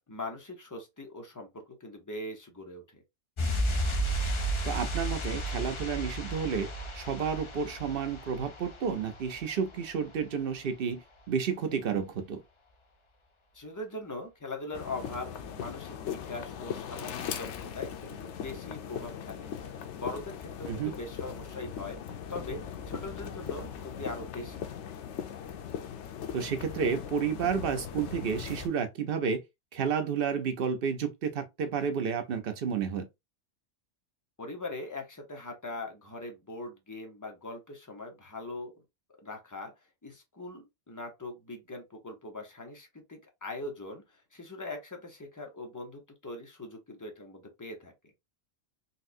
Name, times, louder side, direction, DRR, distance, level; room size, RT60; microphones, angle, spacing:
voice 1, 0.1-3.0 13.5-19.5 20.0-22.0 22.3-22.6 22.9-24.7 34.4-38.7 39.2-39.7 40.0-44.0 44.3-47.9, left 2 dB, 20° left, 0.7 m, -41 dB
sound 1, 3.4-9.9 10.1-10.3, right 1 dB, 40° left, 0.4 m, -33 dB
voice 2, 4.6-6.7 6.9-11.0 11.3-12.4 20.7-20.9 26.3-29.4 29.7-33.0, right 6 dB, 55° right, 0.8 m, -31 dB
sound 2, 14.7-28.7, left 8 dB, 75° left, 0.9 m, -39 dB
4.1 x 2.3 x 2.6 m
omnidirectional pair, 1.2 m